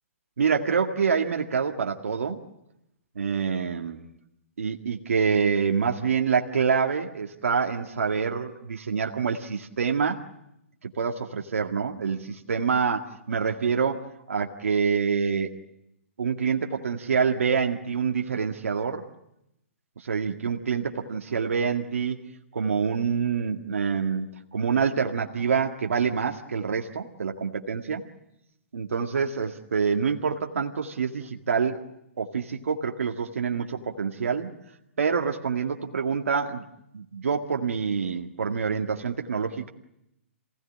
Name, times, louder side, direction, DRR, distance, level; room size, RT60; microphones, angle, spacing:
voice 1, 0.4-2.4 3.2-4.0 4.6-10.2 10.8-15.5 16.2-19.0 20.0-22.2 22.5-28.0 28.7-31.9 32.2-34.5 35.0-36.6 36.9-39.7, right 6 dB, 80° right, 2 dB, 1.9 m, -26 dB
27.0 x 17.5 x 9.8 m, 0.85 s
hypercardioid pair, 145°, 7 cm